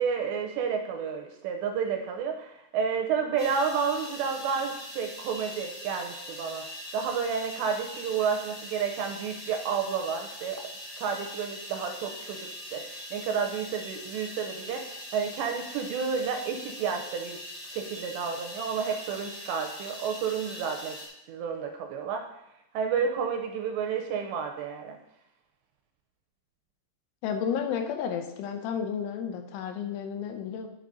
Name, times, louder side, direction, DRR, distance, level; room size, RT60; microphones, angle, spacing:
voice 1, 0.0-6.7 6.9-10.7 11.0-17.4 17.7-21.0 21.3-22.3 22.7-25.0, right 6 dB, 85° right, 4 dB, 2.6 m, -31 dB
sound 1, 3.4-21.1, left 1 dB, 25° left, 2.3 m, -42 dB
voice 2, 27.2-30.7, left 7 dB, 85° left, 5 dB, 3.2 m, -32 dB
9.2 x 6.3 x 3.9 m, 0.85 s
omnidirectional pair, 5.4 m